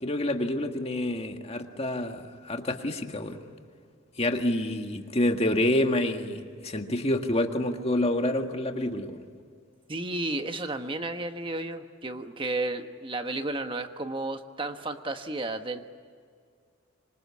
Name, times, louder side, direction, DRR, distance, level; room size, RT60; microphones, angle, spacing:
voice 1, 0.0-3.4 4.2-9.2, left 1 dB, 30° left, 5 dB, 1.8 m, -28 dB
voice 2, 9.9-15.8, right 2 dB, 25° right, 7 dB, 1.3 m, -32 dB
26.5 x 25.0 x 8.5 m, 2.1 s
head